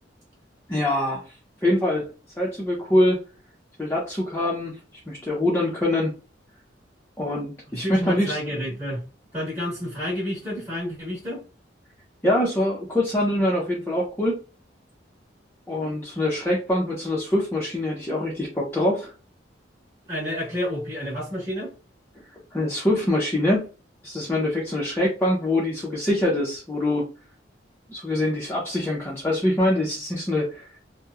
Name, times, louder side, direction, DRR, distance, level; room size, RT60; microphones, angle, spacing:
voice 1, 0.7-1.2 1.6-2.1 2.4-3.2 3.8-4.8 5.1-6.1 7.2-8.4 12.2-14.4 15.7-19.1 22.5-23.7 24.0-27.1 27.9-30.7, left 1 dB, 10° left, 0.5 m, -24 dB
voice 2, 7.7-9.0 9.3-11.4 20.1-21.7, equal, 10° right, 1.0 m, -30 dB
2.8 x 2.0 x 2.3 m
head